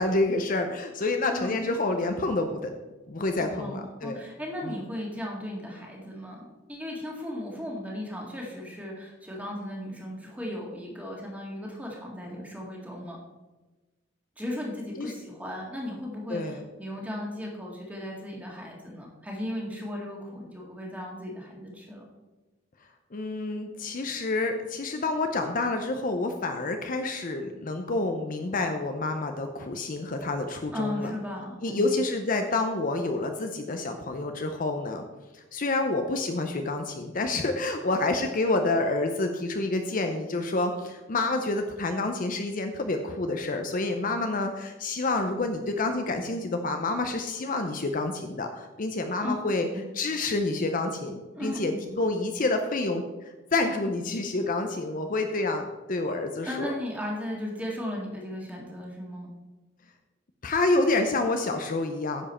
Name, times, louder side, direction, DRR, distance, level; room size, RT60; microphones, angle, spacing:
voice 1, 0.0-2.8 3.1-4.2 4.6-4.7 15.0-15.1 16.3-16.6 23.1-31.1 31.6-35.0 35.3-49.7 50.0-51.7 52.0-56.7 60.4-62.3, left 2 dB, 40° left, 5 dB, 0.6 m, -28 dB
voice 2, 3.4-13.2 14.4-22.0 30.7-32.0 49.2-49.3 49.7-49.8 51.3-51.9 56.4-59.3, left 1 dB, 10° right, -2 dB, 1.9 m, -36 dB
10.0 x 7.3 x 4.3 m, 1.2 s
head